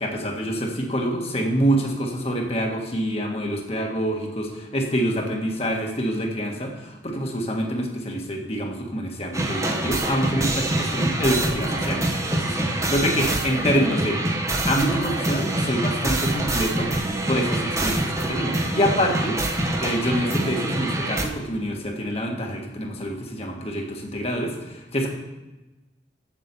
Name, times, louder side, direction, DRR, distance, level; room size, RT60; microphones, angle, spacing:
voice 1, 0.0-14.2 14.6-17.0 17.3-25.1, equal, 35° left, 1 dB, 1.6 m, -26 dB
sound 1, 9.3-21.2, right 1 dB, 15° right, 1.0 m, -25 dB
7.6 x 7.4 x 6.9 m, 1.1 s
head